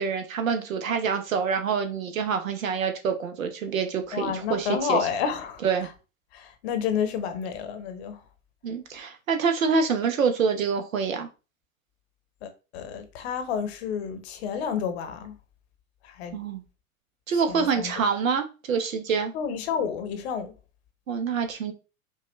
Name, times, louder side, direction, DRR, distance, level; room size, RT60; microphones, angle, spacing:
voice 1, 0.0-5.0 5.6-5.9 8.6-11.3 16.3-16.6 17.3-19.3 21.1-21.7, right 5 dB, 65° right, 1.1 m, -26 dB
voice 2, 4.1-5.9 6.3-8.2 12.4-15.4 16.0-16.4 17.5-17.9 19.3-20.5, left 7 dB, 45° left, 0.9 m, -30 dB
5.2 x 2.4 x 3.1 m
figure-of-eight pair, 95°, 43 cm